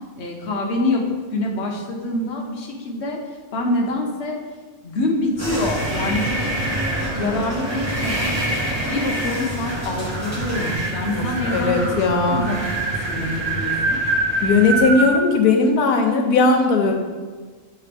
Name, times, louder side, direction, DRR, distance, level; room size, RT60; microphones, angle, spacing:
voice 1, 0.2-3.2 3.5-4.4 4.8-6.4 7.1-8.4 8.9-12.8 13.1-14.0, left 2 dB, 50° left, 0 dB, 1.0 m, -25 dB
sound 1, 5.3-15.1, right 2 dB, 35° right, 0.4 m, -26 dB
sound 2, 5.4-10.7, equal, 10° right, 0.9 m, -30 dB
voice 2, 11.5-12.5 14.4-16.9, left 3 dB, 80° left, 3 dB, 1.3 m, -18 dB
8.3 x 3.3 x 3.4 m, 1.5 s
omnidirectional pair, 1.6 m